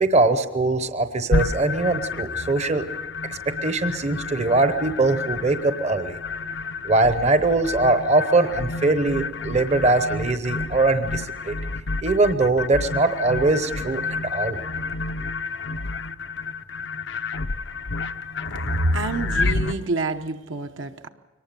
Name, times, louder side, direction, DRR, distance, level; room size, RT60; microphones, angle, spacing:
voice 1, 0.0-2.8 3.5-6.2 6.8-11.6 12.0-14.0 14.3-14.6, right 2 dB, 35° right, 10 dB, 0.8 m, -21 dB
sound 1, 1.3-19.7, left 3 dB, 60° left, 0.7 m, -29 dB
voice 2, 18.7-21.1, right 2 dB, 65° right, 6 dB, 0.9 m, -26 dB
23.0 x 19.0 x 6.8 m, 1.2 s
head